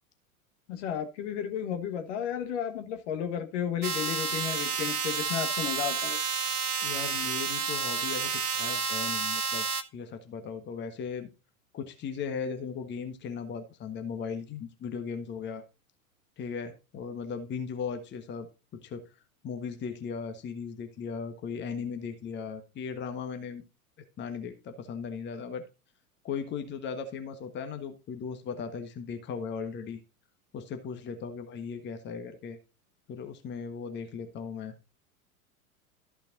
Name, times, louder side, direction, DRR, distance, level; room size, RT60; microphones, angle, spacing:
voice 1, 0.7-6.2, left 9 dB, 50° left, 1.6 m, -33 dB
sound 1, 3.8-9.8, right 5 dB, 75° right, 1.2 m, -30 dB
voice 2, 6.8-9.7 9.9-11.3 11.7-15.6 16.4-18.5 18.7-19.2 19.4-23.6 24.2-25.6 26.2-30.0 30.5-32.6 33.1-34.7, left 6 dB, 25° left, 1.4 m, -37 dB
13.5 x 6.9 x 2.6 m
figure-of-eight pair, 90°, 45 cm